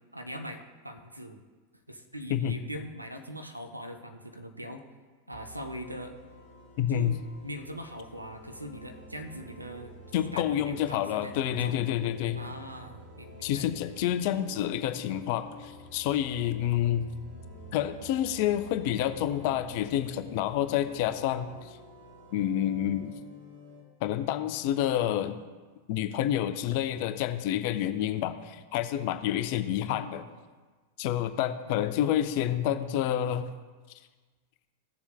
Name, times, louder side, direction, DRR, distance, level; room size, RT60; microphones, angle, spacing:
voice 1, 0.1-1.4 1.9-4.8 5.3-6.2 6.9-7.2 7.4-11.8 12.4-13.9 29.8-30.3 31.6-32.2, equal, 85° right, 5 dB, 0.8 m, -42 dB
sound 1, 5.3-23.8, equal, 60° right, 2.5 m, -49 dB
voice 2, 6.8-7.2 10.1-12.4 13.4-17.1 17.7-21.8 22.3-23.1 24.0-25.4 25.9-30.2 31.0-33.5, left 11 dB, 45° left, 10 dB, 0.5 m, -28 dB
15.5 x 7.0 x 2.2 m, 1.4 s
figure-of-eight pair, 90°, 0 cm